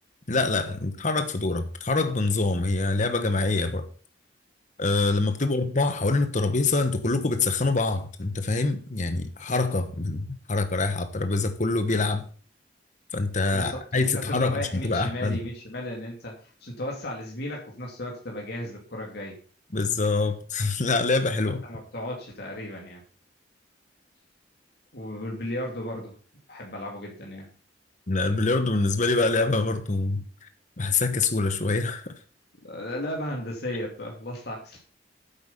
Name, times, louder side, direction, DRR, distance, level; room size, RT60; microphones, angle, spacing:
voice 1, 0.3-3.9 4.8-12.2 13.1-15.4 19.7-21.6 28.1-30.5 30.8-32.1, left 3 dB, 45° left, 1.2 m, -25 dB
voice 2, 13.5-19.3 21.6-23.0 24.9-26.1 26.5-27.5 32.6-34.8, left 1 dB, 65° left, 2.6 m, -35 dB
9.6 x 8.0 x 5.5 m
head